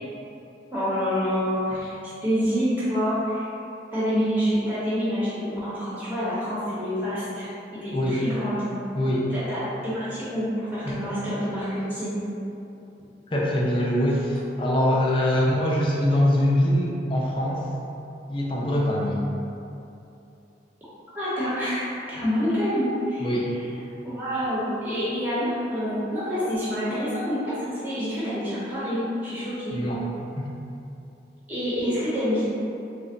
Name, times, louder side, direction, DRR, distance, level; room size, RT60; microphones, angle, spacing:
voice 1, 0.7-1.9 2.2-3.5 3.9-7.5 7.8-8.6 9.3-12.2 21.1-23.6 24.0-29.8 31.5-32.4, equal, 10° right, -12 dB, 0.8 m, -27 dB
voice 2, 8.9-9.3 10.8-11.0 13.3-17.6 18.3-19.2 23.2-23.5 29.7-30.0 30.4-30.5, left 1 dB, 30° left, -5 dB, 0.5 m, -23 dB
3.3 x 2.1 x 3.8 m, 2.8 s
head